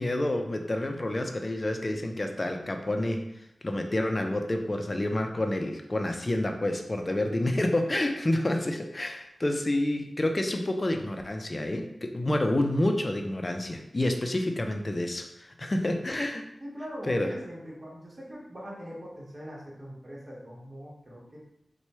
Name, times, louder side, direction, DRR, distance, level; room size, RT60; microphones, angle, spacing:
voice 1, 0.0-3.2 3.6-16.4 17.1-17.3, left 1 dB, 35° left, 4 dB, 0.5 m, -28 dB
voice 2, 16.6-21.4, equal, 40° right, -5 dB, 1.3 m, -41 dB
3.0 x 2.3 x 4.2 m, 0.79 s
cardioid pair, 50°, 0 cm